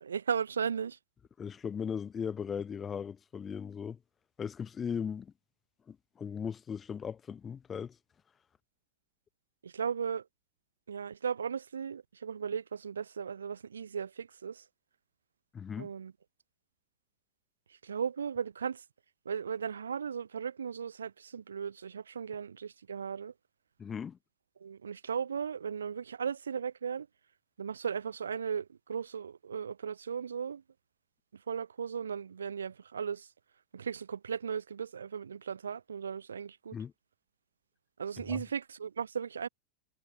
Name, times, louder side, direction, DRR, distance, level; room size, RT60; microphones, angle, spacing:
voice 1, 0.0-1.0 9.6-10.2 10.9-14.6 15.8-16.1 17.8-18.8 19.3-23.3 24.6-27.1 27.6-30.6 31.5-33.2 33.7-36.7 38.0-39.5, right 7 dB, 70° right, 0.8 m, -36 dB
voice 2, 1.4-4.0 4.4-5.3 5.9-8.0 15.5-15.9 23.8-24.2 36.7-36.9 38.3-38.4, left 7 dB, 20° left, 1.1 m, -38 dB
figure-of-eight pair, 90°, 0 cm